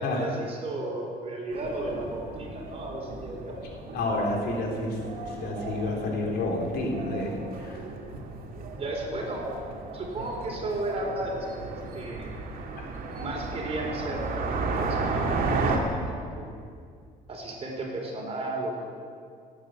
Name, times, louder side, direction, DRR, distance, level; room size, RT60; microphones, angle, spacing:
voice 1, 0.0-3.6 8.7-9.5 9.9-12.3 13.1-16.6 17.3-18.9, right 1 dB, 35° right, 0 dB, 4.1 m, -34 dB
sound 1, 1.5-15.8, right 3 dB, 55° right, 2.3 m, -34 dB
voice 2, 3.9-7.8 12.8-12.9, left 2 dB, 70° left, 0 dB, 3.3 m, -30 dB
16.5 x 9.0 x 7.9 m, 2.2 s
cardioid pair, 110°, 17 cm